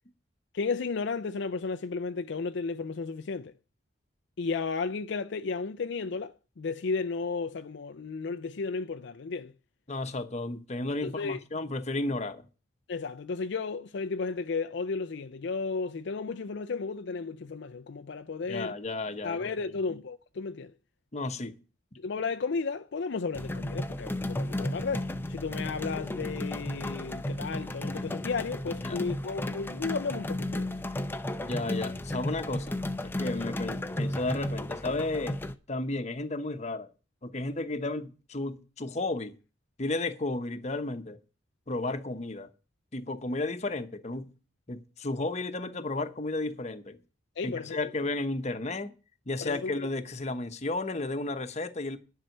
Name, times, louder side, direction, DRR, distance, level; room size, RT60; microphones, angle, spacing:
voice 1, 0.5-3.5 4.4-9.5 11.0-11.4 12.9-18.7 19.2-20.7 22.0-30.7 47.4-47.9 49.4-49.8, left 4 dB, 65° left, 0.5 m, -33 dB
voice 2, 9.9-12.5 18.5-19.5 21.1-21.6 28.8-29.0 31.4-35.4 35.7-36.9 37.2-39.3 39.8-41.2 41.7-42.5 42.9-44.3 44.7-47.0 47.4-48.9 49.3-52.0, left 2 dB, 35° left, 1.0 m, -33 dB
sound 1, 23.3-35.5, left 1 dB, 10° left, 0.6 m, -34 dB
11.0 x 5.7 x 7.7 m
head